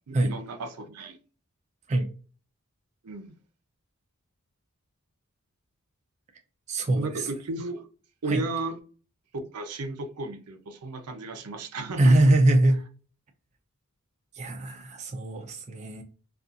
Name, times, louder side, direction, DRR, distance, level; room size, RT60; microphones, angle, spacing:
voice 1, 0.1-1.2 3.0-3.3 7.0-7.9 8.2-8.7 9.3-12.3, right 3 dB, 90° right, 0.6 m, -34 dB
voice 2, 6.7-7.3 8.3-8.4 12.0-12.8 14.3-16.0, right 1 dB, 30° right, 0.4 m, -23 dB
2.4 x 2.3 x 2.6 m
head